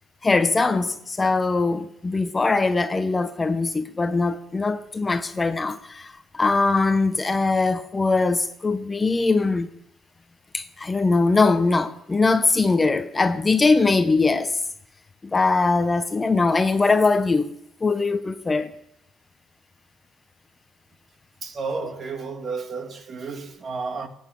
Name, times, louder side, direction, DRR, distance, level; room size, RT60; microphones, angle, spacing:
voice 1, 0.2-9.7 10.5-14.6 15.2-17.5 17.8-18.7, left 3 dB, 20° left, 0.7 m, -21 dB
voice 2, 21.4-24.1, right 4 dB, 35° right, 1.7 m, -32 dB
17.5 x 9.0 x 8.5 m
cardioid pair, 135°, 0 cm